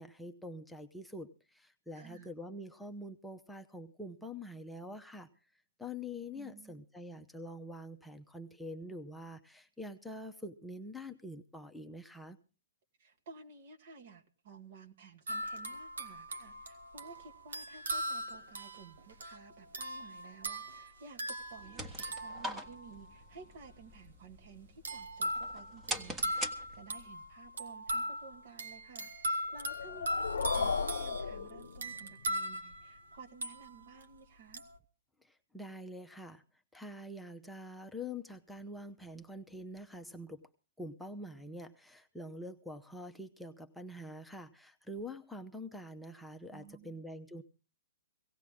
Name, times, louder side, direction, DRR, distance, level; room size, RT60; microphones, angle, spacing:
voice 1, 0.0-5.3 5.8-12.4 35.2-36.4 36.7-40.4 40.8-47.4, left 1 dB, ahead, 4 dB, 0.8 m, -45 dB
voice 2, 1.9-2.3 6.3-6.8 13.0-34.6 46.5-47.0, right 4 dB, 55° right, 6 dB, 1.9 m, -54 dB
sound 1, 15.3-23.1 24.8-34.0 34.5-34.8, right 1 dB, 85° right, 1.9 m, -39 dB
sound 2, 21.4-27.1, equal, 15° right, 1.4 m, -44 dB
sound 3, 29.6-32.2, left 5 dB, 85° left, 0.6 m, -35 dB
18.0 x 16.0 x 3.6 m, 0.34 s
hypercardioid pair, 135°, 0 cm